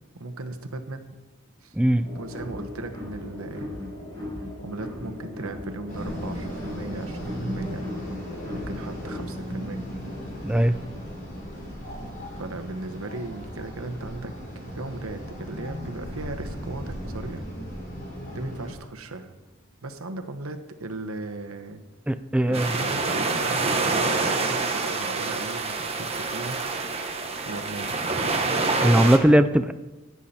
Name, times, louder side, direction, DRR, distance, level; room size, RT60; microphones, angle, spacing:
voice 1, 0.1-1.1 1.6-1.7 2.1-3.8 4.6-7.8 8.5-9.8 12.4-17.4 18.3-19.3 19.8-21.8 22.4-26.6 27.4-28.0, right 2 dB, 85° right, 7 dB, 1.1 m, -37 dB
sound 1, 2.0-9.2, left 1 dB, 25° left, 4.9 m, -37 dB
sound 2, 5.9-18.7, equal, 40° left, 3.6 m, -36 dB
voice 2, 10.4-10.7 22.1-22.7 28.8-29.7, right 1 dB, 5° right, 10 dB, 0.3 m, -19 dB
sound 3, 22.5-29.2, right 3 dB, 30° right, 1.2 m, -26 dB
15.5 x 8.3 x 4.3 m, 1.1 s
head